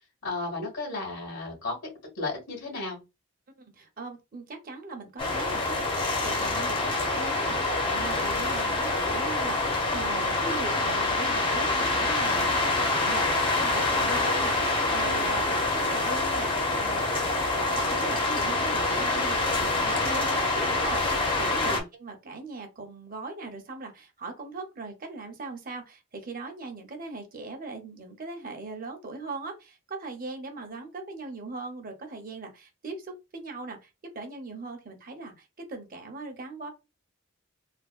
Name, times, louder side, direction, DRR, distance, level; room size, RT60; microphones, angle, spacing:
voice 1, 0.2-3.0 21.6-21.8, left 2 dB, 90° left, 1.6 m, -34 dB
voice 2, 3.6-5.8 6.2-17.1 17.5-36.7, right 3 dB, 45° right, 0.7 m, -39 dB
sound 1, 5.2-21.8, left 2 dB, 25° left, 0.5 m, -26 dB
3.4 x 2.2 x 2.3 m
head